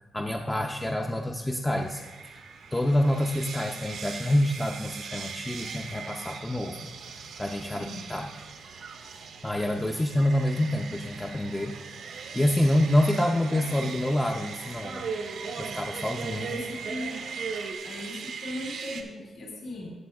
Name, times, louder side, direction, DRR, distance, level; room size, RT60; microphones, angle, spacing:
voice 1, 0.1-6.8 7.4-8.3 9.4-11.7 12.3-15.1 15.6-16.5, left 1 dB, 10° left, 2 dB, 0.4 m, -27 dB
sound 1, 1.7-19.0, right 6 dB, 90° right, 0.9 m, -41 dB
sound 2, 5.5-17.7, right 5 dB, 65° right, 0.8 m, -41 dB
voice 2, 16.3-17.2 17.8-19.9, left 1 dB, 65° left, -2 dB, 2.5 m, -38 dB
14.0 x 7.7 x 2.3 m, 1.3 s
wide cardioid pair, 145°, 0 cm